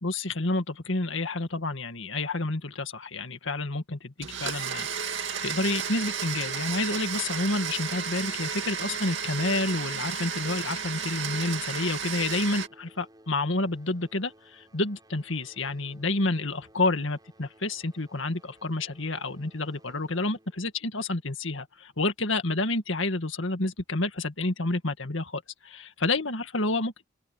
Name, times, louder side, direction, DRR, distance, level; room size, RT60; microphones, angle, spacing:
voice 1, 0.0-27.0, left 2 dB, 65° left, 2.0 m, -29 dB
Domestic sounds home sounds, 4.2-12.7, right 7 dB, 60° right, 2.5 m, -33 dB
sound 1, 11.8-22.1 23.0-23.1 23.8-23.9 24.5-24.6, right 1 dB, 20° right, 7.8 m, -58 dB
open air
head